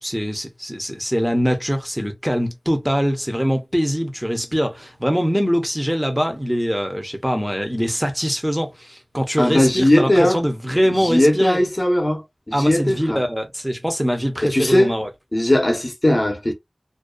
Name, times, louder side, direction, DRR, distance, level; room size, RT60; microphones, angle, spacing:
voice 1, 0.0-11.6 12.5-15.1, equal, 5° right, 0.7 m, -23 dB
voice 2, 9.4-10.4 11.0-13.2 14.4-14.9 15.3-16.5, left 1 dB, 35° left, 0.8 m, -18 dB
2.5 x 2.3 x 2.3 m
wide cardioid pair, 60°, 0 cm